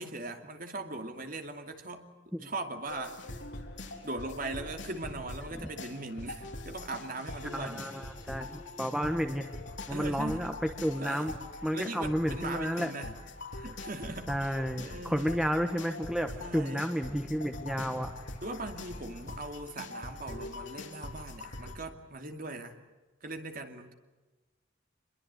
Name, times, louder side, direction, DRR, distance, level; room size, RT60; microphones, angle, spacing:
voice 1, 0.0-2.0 2.4-3.2 4.0-7.9 9.9-10.5 11.0-11.3 11.7-13.2 13.6-15.5 16.3-16.8 18.4-22.8 23.2-23.9, right 2 dB, 45° right, 6 dB, 2.6 m, -40 dB
sound 1, 2.9-21.8, left 2 dB, 70° left, 3.7 m, -43 dB
voice 2, 7.5-9.5 9.9-11.3 11.6-12.9 14.3-18.1, equal, 5° right, 6 dB, 1.5 m, -31 dB
27.0 x 22.0 x 8.3 m, 1.2 s
head